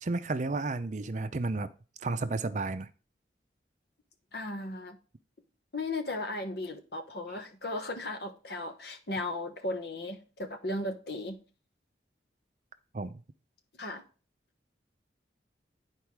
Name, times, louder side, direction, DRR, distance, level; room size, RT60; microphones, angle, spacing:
voice 1, 0.0-1.7 2.0-2.9 12.9-13.1, right 3 dB, 40° right, 0.5 m, -32 dB
voice 2, 4.3-5.0 5.7-11.4 13.8-14.0, left 2 dB, 60° left, 1.2 m, -36 dB
10.5 x 4.5 x 4.7 m
head